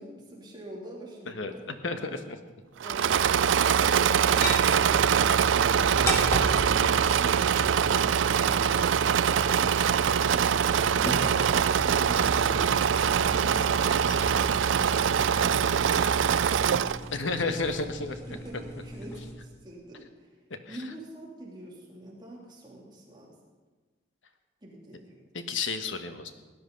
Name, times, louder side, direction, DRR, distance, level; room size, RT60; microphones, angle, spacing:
voice 1, 0.0-1.6 2.8-3.2 18.1-20.3 20.7-23.3 24.6-25.2, right 1 dB, 20° right, -4 dB, 2.9 m, -45 dB
voice 2, 1.3-2.4 6.9-7.2 9.6-9.9 13.4-14.5 17.1-18.2 20.7-20.8 25.3-26.3, left 3 dB, 80° left, 7 dB, 1.2 m, -33 dB
Engine / Mechanisms, 2.8-17.1, right 8 dB, 80° right, 0.4 m, -23 dB
sound 1, 4.3-19.3, equal, 15° left, 1.7 m, -37 dB
17.0 x 11.0 x 5.3 m, 1.3 s
head